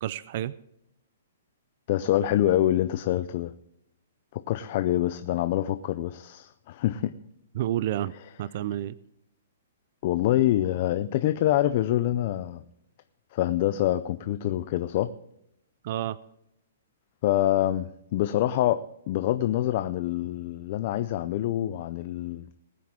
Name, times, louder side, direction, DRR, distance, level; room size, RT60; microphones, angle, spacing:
voice 1, 0.0-0.5 7.5-8.1 8.4-9.0 15.8-16.2, right 12 dB, 35° right, 0.4 m, -29 dB
voice 2, 1.9-3.5 4.3-7.1 10.0-12.6 13.3-15.1 17.2-22.4, left 13 dB, 30° left, 0.4 m, -26 dB
20.5 x 9.4 x 3.6 m
hypercardioid pair, 180°, 0 cm